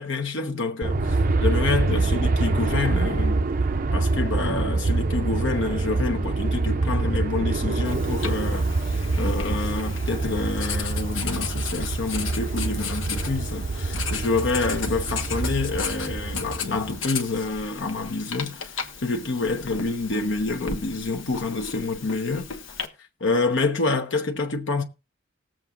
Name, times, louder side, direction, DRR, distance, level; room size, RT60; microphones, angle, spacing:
voice 1, 0.0-3.4 3.9-22.5 23.2-24.8, left 3 dB, 70° left, 1.0 m, -27 dB
Aircraft, 0.8-17.0, right 3 dB, 45° right, 0.5 m, -25 dB
Writing, 7.8-22.9, left 6 dB, 90° left, 1.2 m, -35 dB
19.5 x 7.6 x 2.5 m
head